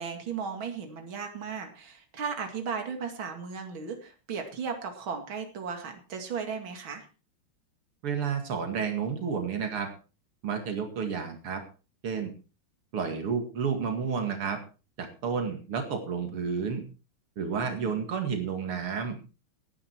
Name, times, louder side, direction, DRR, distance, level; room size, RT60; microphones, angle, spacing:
voice 1, 0.0-7.1 17.4-18.0, right 6 dB, 65° right, 5 dB, 3.1 m, -36 dB
voice 2, 8.0-9.9 10.4-11.6 12.0-12.3 12.9-14.6 15.0-16.8 17.4-19.2, right 6 dB, 85° right, 5 dB, 3.1 m, -31 dB
18.0 x 9.9 x 4.5 m, 0.34 s
omnidirectional pair, 2.4 m